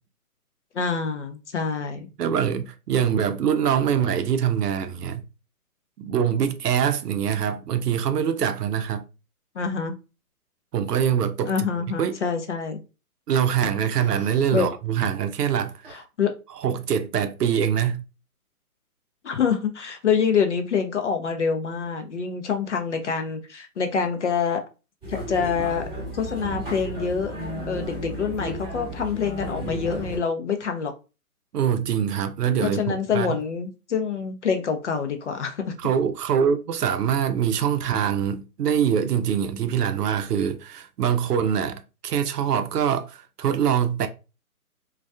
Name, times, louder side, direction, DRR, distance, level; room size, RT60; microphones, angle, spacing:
voice 1, 0.7-2.1 9.6-9.9 11.5-12.8 14.5-14.7 15.9-16.3 19.2-24.6 25.1-25.8 26.1-27.4 27.7-30.9 32.6-35.7, left 6 dB, 50° left, 0.5 m, -26 dB
voice 2, 2.2-5.2 6.0-9.0 10.7-11.7 12.0-12.2 13.3-16.0 16.6-18.0 31.5-33.4 35.8-44.1, right 8 dB, 85° right, 0.6 m, -24 dB
Fart, 14.0-14.5 15.8-16.0, right 2 dB, 40° right, 0.8 m, -46 dB
sound 1, 25.0-30.2, right 1 dB, 5° right, 0.8 m, -33 dB
2.3 x 2.2 x 2.5 m
hypercardioid pair, 160°, 46 cm